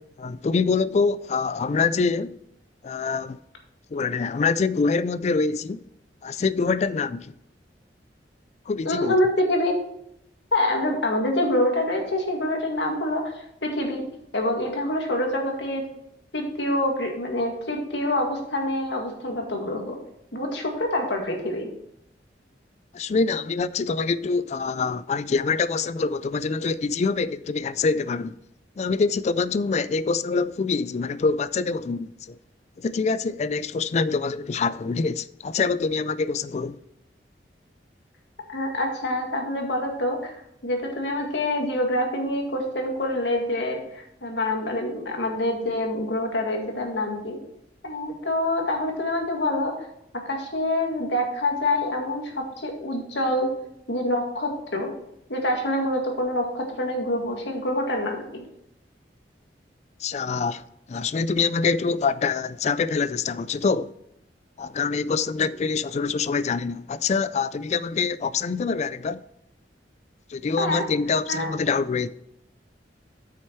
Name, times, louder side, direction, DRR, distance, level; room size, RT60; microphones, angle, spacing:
voice 1, 0.0-2.4 2.8-3.4 3.9-5.9 6.2-7.3 8.7-9.2 22.9-28.4 28.8-32.4 32.8-36.8 60.0-60.6 60.9-63.9 64.6-69.2 70.3-72.1, left 4 dB, 40° left, 0.3 m, -25 dB
voice 2, 8.9-9.8 10.5-14.1 14.3-15.8 16.3-20.0 20.3-21.7 38.5-40.3 40.6-47.4 47.8-49.7 50.1-53.5 53.9-54.9 55.3-58.4 70.6-70.8 71.3-71.5, left 1 dB, 85° left, 2.0 m, -26 dB
8.6 x 6.5 x 4.5 m
head